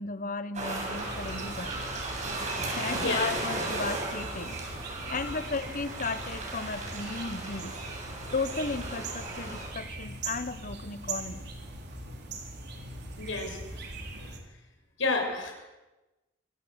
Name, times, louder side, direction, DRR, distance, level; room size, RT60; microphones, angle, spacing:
voice 1, 0.0-1.8 2.6-4.6 5.1-7.8 8.3-11.5, left 3 dB, 45° left, 12 dB, 1.3 m, -35 dB
sound 1, 0.5-9.7, right 2 dB, 40° right, 7.9 m, -36 dB
sound 2, 0.9-14.4, right 2 dB, 60° right, 4.2 m, -41 dB
voice 2, 2.6-3.2 5.0-5.2 13.2-13.6 14.2-14.3 15.0-15.5, left 3 dB, 85° left, 3 dB, 6.8 m, -31 dB
25.0 x 17.5 x 8.4 m, 1.1 s
head